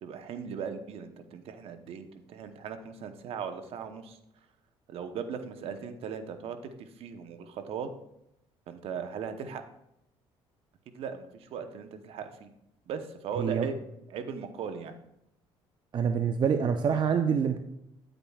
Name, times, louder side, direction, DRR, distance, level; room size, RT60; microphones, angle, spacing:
voice 1, 0.0-4.2 4.9-7.9 8.7-9.6 10.9-12.5 12.9-14.9, right 6 dB, 65° right, 8 dB, 0.9 m, -38 dB
voice 2, 13.4-13.7 15.9-17.6, right 7 dB, 45° right, 7 dB, 0.6 m, -26 dB
9.8 x 8.9 x 2.4 m, 0.81 s
cardioid pair, 90°, 11 cm